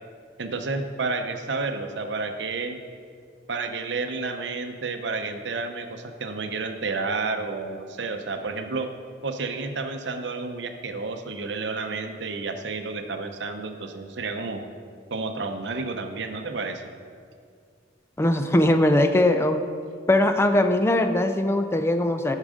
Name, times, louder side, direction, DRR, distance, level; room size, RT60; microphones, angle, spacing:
voice 1, 0.4-2.8 3.5-8.9 9.2-14.6 15.1-16.8, right 3 dB, 70° right, 6 dB, 0.7 m, -30 dB
voice 2, 18.2-19.6 20.1-22.3, left 1 dB, 15° left, 7 dB, 0.3 m, -20 dB
8.5 x 6.5 x 5.0 m, 2.1 s
head